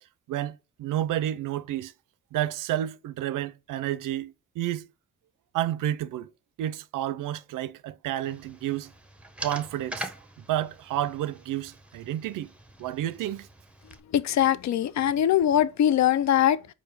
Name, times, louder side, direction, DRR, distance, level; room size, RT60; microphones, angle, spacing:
voice 1, 0.3-1.9 2.3-4.9 5.5-6.3 6.6-8.9 9.4-10.1 10.4-12.5 12.8-13.5, right 12 dB, 70° right, 0.5 m, -30 dB
sound 1, 8.2-14.0, right 1 dB, 5° right, 0.8 m, -43 dB
voice 2, 14.1-16.7, left 10 dB, 60° left, 0.5 m, -22 dB
4.7 x 2.2 x 4.1 m
supercardioid pair, 55°, 33 cm